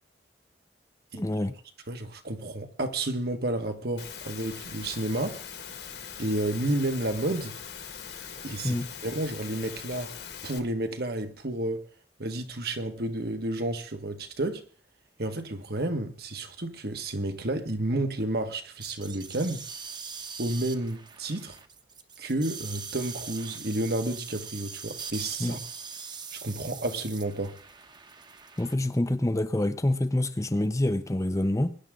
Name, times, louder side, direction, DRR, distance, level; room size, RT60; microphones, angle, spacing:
voice 1, 1.2-1.5 8.6-8.9 25.4-25.6 28.6-31.8, left 1 dB, 20° left, 0.7 m, -26 dB
voice 2, 1.9-5.4 6.2-7.6 8.4-10.1 10.4-11.8 12.2-14.6 15.2-19.6 20.4-21.6 22.2-25.6 26.3-27.5, right 1 dB, 60° right, 1.7 m, -31 dB
Engine / Mechanisms, 4.0-10.6, left 7 dB, 65° left, 2.0 m, -41 dB
sound 1, 18.8-28.7, right 6 dB, 25° right, 1.1 m, -42 dB
22.0 x 11.0 x 3.8 m
head